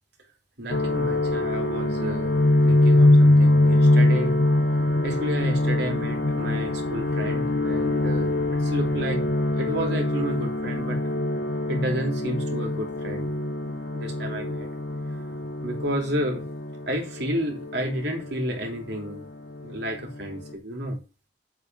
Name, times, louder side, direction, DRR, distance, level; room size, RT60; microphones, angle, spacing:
voice 1, 0.6-4.4 5.0-8.4 8.6-9.2 9.5-11.0 11.7-13.3 13.6-14.7 15.6-16.5 16.9-19.2 19.6-21.0, right 1 dB, 65° right, 2 dB, 3.5 m, -31 dB
sound 1, 0.7-19.2 19.5-20.5, left 1 dB, 65° left, 1.6 m, -23 dB
8.0 x 6.1 x 7.6 m, 0.30 s
head